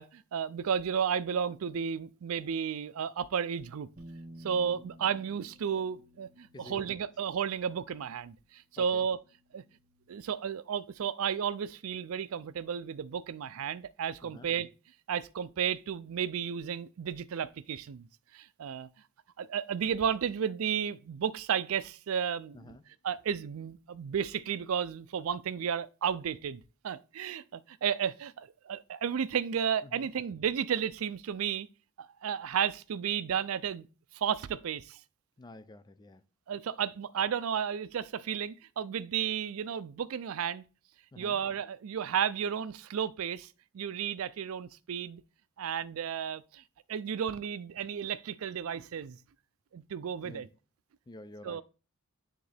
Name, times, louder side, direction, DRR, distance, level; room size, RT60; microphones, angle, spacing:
voice 1, 0.0-3.9 4.4-9.2 9.5-9.6 10.1-14.7 15.1-18.1 18.3-18.9 19.4-22.8 23.0-31.7 32.0-33.9 34.1-35.0 36.5-40.6 41.2-45.2 45.6-46.6 46.9-49.2 49.7-50.5 51.4-51.6, right 8 dB, 80° right, 0.4 m, -33 dB
sound 1, 4.0-10.2, right 1 dB, 50° right, 1.4 m, -54 dB
voice 2, 6.5-7.0 8.8-9.1 14.2-14.5 22.5-22.8 29.8-30.1 35.4-36.2 41.1-41.4 50.2-50.5 51.1-51.6, left 2 dB, 20° left, 0.4 m, -49 dB
9.3 x 3.7 x 3.4 m
head